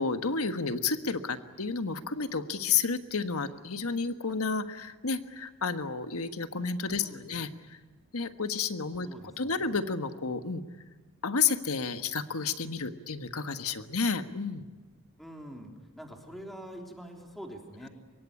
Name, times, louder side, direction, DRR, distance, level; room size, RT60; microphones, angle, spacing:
voice 1, 0.0-7.5 8.1-9.1 9.4-10.6 11.2-14.6, left 5 dB, 75° left, 9 dB, 1.5 m, -31 dB
voice 2, 7.0-7.4 9.0-9.8 15.2-17.9, equal, ahead, 1 dB, 3.6 m, -45 dB
25.0 x 23.0 x 9.8 m, 1.3 s
head